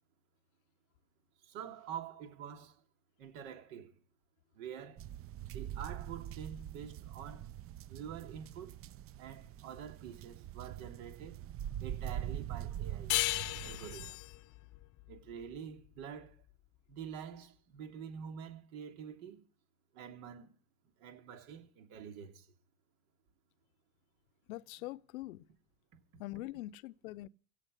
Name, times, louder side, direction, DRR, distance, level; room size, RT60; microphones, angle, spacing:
voice 1, 1.4-2.8 3.2-4.0 4.5-5.1 5.5-7.5 7.9-8.7 9.2-11.4 11.8-13.1 13.6-14.2 15.1-16.3 16.9-19.4 19.9-20.6 21.0-22.5, right 8 dB, 70° right, 3.1 m, -47 dB
sound 1, 5.0-14.1, right 11 dB, 30° right, 0.6 m, -43 dB
sound 2, 13.1-16.3, left 20 dB, 45° left, 0.7 m, -36 dB
voice 2, 24.5-25.5 26.2-27.3, left 17 dB, 75° left, 0.8 m, -43 dB
16.5 x 6.6 x 9.7 m
hypercardioid pair, 95°, 43 cm